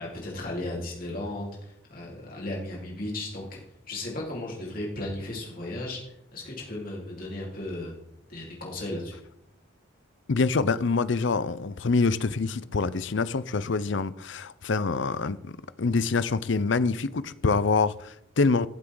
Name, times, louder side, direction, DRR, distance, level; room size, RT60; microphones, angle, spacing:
voice 1, 0.0-3.6 3.9-8.0 8.3-9.2, left 1 dB, 45° left, 4.0 m, -35 dB
voice 2, 10.3-18.7, left 4 dB, 65° left, 0.6 m, -26 dB
14.5 x 8.0 x 3.9 m
head